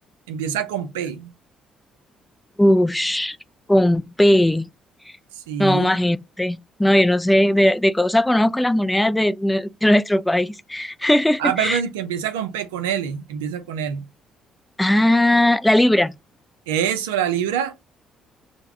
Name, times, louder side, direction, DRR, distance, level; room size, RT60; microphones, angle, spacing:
voice 1, 0.3-1.3 5.4-6.0 11.4-14.0 16.7-17.8, right 8 dB, 80° right, 0.4 m, -25 dB
voice 2, 2.6-3.4 3.7-4.7 5.6-11.8 14.8-16.1, left 1 dB, 10° left, 0.3 m, -18 dB
3.3 x 2.1 x 3.3 m
hypercardioid pair, 45°, 0 cm